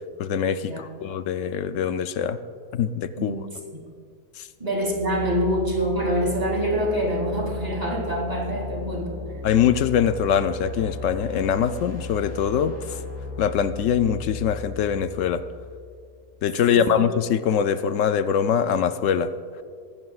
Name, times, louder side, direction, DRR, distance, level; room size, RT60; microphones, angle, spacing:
voice 1, 0.2-2.4 2.7-3.4 4.4-4.5 9.4-13.0 13.4-15.4 16.4-19.3, left 8 dB, 70° left, 11 dB, 0.8 m, -23 dB
sound 1, 4.6-16.4, left 3 dB, 10° left, 2.5 m, -36 dB
voice 2, 4.6-9.2 16.6-17.0, equal, 25° right, -2 dB, 2.9 m, -25 dB
20.5 x 15.0 x 2.4 m, 2.3 s
omnidirectional pair, 1.7 m